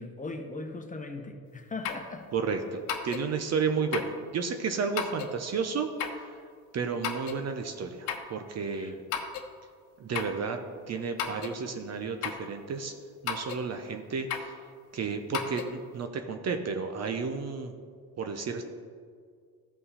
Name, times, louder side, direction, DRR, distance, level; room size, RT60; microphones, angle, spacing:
voice 1, 0.0-2.3 8.7-9.0, left 3 dB, 20° left, 5 dB, 1.2 m, -39 dB
sound 1, 1.8-2.1 2.9-3.3 3.9-4.2 5.0-5.3 6.0-6.3 7.0-7.4 8.1-8.3 9.1-9.5 10.1-10.4 11.2-11.6 12.2-12.5 13.3-13.6 14.3-14.5 15.3-15.7, left 7 dB, 70° left, 1.0 m, -34 dB
voice 2, 2.3-6.3 6.7-9.0 10.0-10.6 10.9-12.9 13.2-14.6 14.9-17.7 18.2-18.6, right 5 dB, 35° right, 6 dB, 0.9 m, -32 dB
14.5 x 5.4 x 4.2 m, 2.1 s
hypercardioid pair, 70°, 43 cm